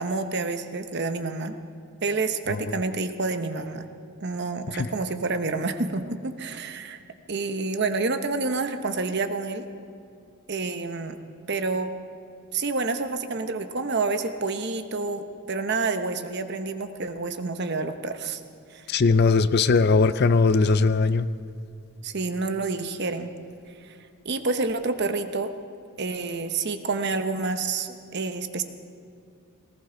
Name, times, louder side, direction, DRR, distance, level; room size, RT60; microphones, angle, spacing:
voice 1, 0.0-1.6 2.0-3.9 4.2-7.0 7.3-9.6 10.5-11.2 11.5-11.9 12.5-18.4 18.7-18.8 22.0-23.3 23.9-24.0 24.2-25.5 26.0-28.6, right 3 dB, 50° right, 8 dB, 0.9 m, -28 dB
voice 2, 18.9-21.3, left 4 dB, 45° left, 14 dB, 0.5 m, -20 dB
19.0 x 18.5 x 3.9 m, 2.5 s
head